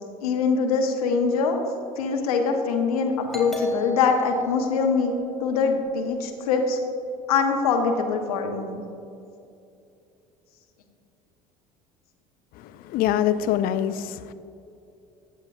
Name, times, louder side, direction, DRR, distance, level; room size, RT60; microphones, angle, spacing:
voice 1, 0.2-1.6 2.0-5.1 5.4-6.8 7.3-8.8, left 5 dB, 75° left, 3 dB, 1.1 m, -23 dB
Doorbell, 3.3-6.7, equal, ahead, 2.5 m, -39 dB
voice 2, 12.6-14.3, left 10 dB, 50° left, 11 dB, 0.6 m, -24 dB
14.5 x 8.7 x 2.7 m, 2.6 s
figure-of-eight pair, 60°, 19 cm